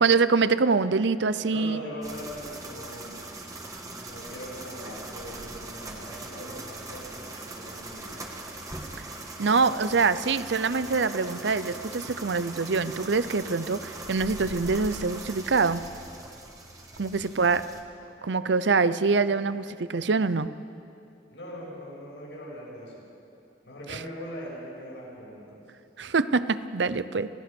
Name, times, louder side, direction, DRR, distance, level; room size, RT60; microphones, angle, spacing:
voice 1, 0.0-1.8 9.4-15.8 17.0-17.7 18.2-20.5 23.9-24.0 26.0-27.3, right 4 dB, 80° right, 14 dB, 0.7 m, -24 dB
voice 2, 1.5-3.2 4.1-8.4 17.0-17.4 21.3-22.9 23.6-25.6, equal, 85° left, -5 dB, 7.3 m, -41 dB
sound 1, 2.0-17.8, right 2 dB, 20° right, 1.6 m, -41 dB
27.0 x 16.5 x 6.2 m, 2.7 s
head